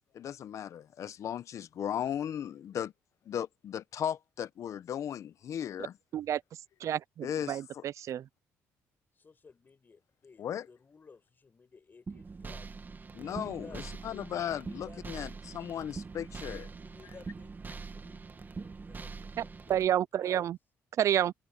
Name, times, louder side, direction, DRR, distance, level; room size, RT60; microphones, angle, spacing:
voice 1, 0.1-2.9 3.3-5.9 7.2-7.8 10.4-10.6 13.1-16.6, left 9 dB, 60° left, 1.0 m, -36 dB
voice 2, 6.8-8.3 19.7-20.6 21.0-21.3, right 10 dB, 60° right, 0.4 m, -29 dB
voice 3, 9.1-13.9 14.4-15.5 16.3-17.6 17.9-20.5, left 4 dB, 35° left, 6.8 m, -56 dB
sound 1, 12.1-19.9, right 4 dB, 35° right, 2.0 m, -43 dB
supercardioid pair, 75°, 6 cm